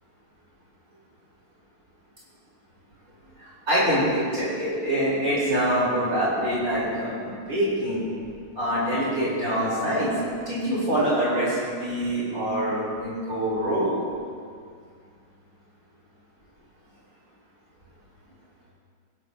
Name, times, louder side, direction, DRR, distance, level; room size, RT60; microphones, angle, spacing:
voice 1, 3.4-8.1 8.6-10.1 10.5-13.9, equal, 65° right, -9 dB, 4.0 m, -25 dB
18.5 x 11.5 x 2.7 m, 2.2 s
omnidirectional pair, 1.7 m